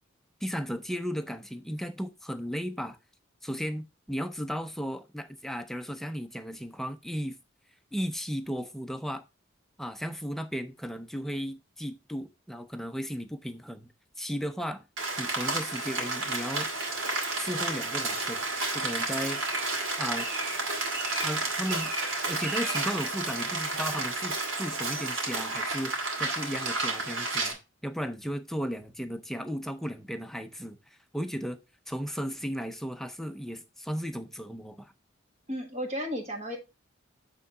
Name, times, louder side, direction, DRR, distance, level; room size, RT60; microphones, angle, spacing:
voice 1, 0.4-3.0 3.4-7.4 7.9-9.2 9.8-13.9 14.2-14.8 15.2-16.7 17.4-18.4 18.7-19.4 20.0-20.3 21.2-21.9 22.3-27.6 27.8-31.6 31.9-34.9, equal, ahead, 0.5 m, -35 dB
Rain, 15.0-27.5, right 3 dB, 80° right, 2.3 m, -31 dB
voice 2, 35.5-36.6, equal, 35° right, 1.5 m, -33 dB
8.2 x 3.7 x 3.9 m
head